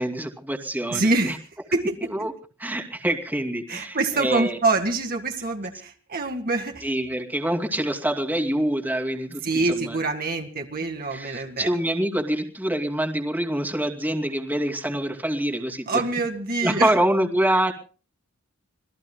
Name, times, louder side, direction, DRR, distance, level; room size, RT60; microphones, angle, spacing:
voice 1, 0.0-1.4 2.1-2.3 2.6-4.6 6.8-10.0 11.1-16.0 16.6-17.7, right 1 dB, 10° right, 3 dB, 2.6 m, -26 dB
voice 2, 0.9-1.4 1.7-2.3 3.7-6.8 9.4-11.7 15.9-16.9, right 3 dB, 45° right, 4 dB, 1.9 m, -25 dB
27.0 x 20.5 x 2.2 m, 0.37 s
head